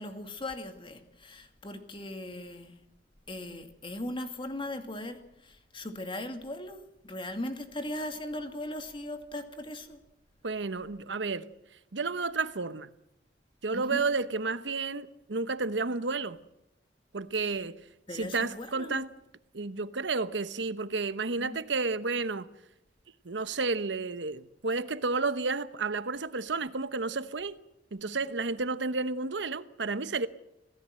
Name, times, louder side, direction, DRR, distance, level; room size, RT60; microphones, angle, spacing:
voice 1, 0.0-2.8 3.3-10.0 13.7-14.0 17.3-17.5 18.1-19.0 21.4-21.6, left 1 dB, 30° left, 2.4 m, -39 dB
voice 2, 10.4-11.5 11.9-12.9 13.6-16.4 17.1-17.8 18.1-19.1 19.5-22.5 23.2-27.6 27.9-30.3, right 3 dB, 85° right, 1.0 m, -31 dB
26.5 x 17.0 x 7.7 m
head